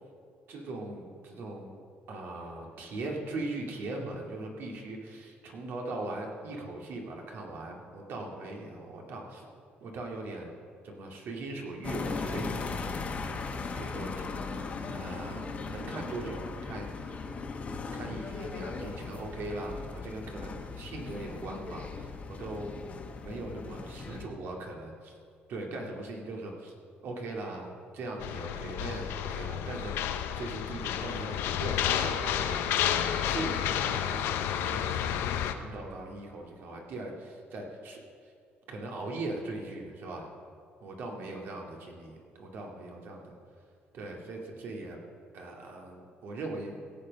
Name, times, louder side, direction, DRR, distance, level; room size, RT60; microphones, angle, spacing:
voice 1, 0.5-1.7 2.1-9.5 9.8-10.6 10.8-12.5 13.0-13.3 13.8-14.2 14.9-17.2 17.9-22.8 23.2-25.1 25.5-26.7 27.0-32.6 33.2-35.2 35.4-38.0 38.7-40.3 40.8-43.3 43.9-45.0 45.3-46.8, right 2 dB, 65° right, 1 dB, 2.2 m, -40 dB
sound 1, 11.8-24.3, left 4 dB, 35° left, 1.3 m, -38 dB
sound 2, 28.2-35.5, left 9 dB, 85° left, 0.7 m, -31 dB
16.5 x 7.5 x 5.3 m, 2.3 s
cardioid pair, 115°, 4 cm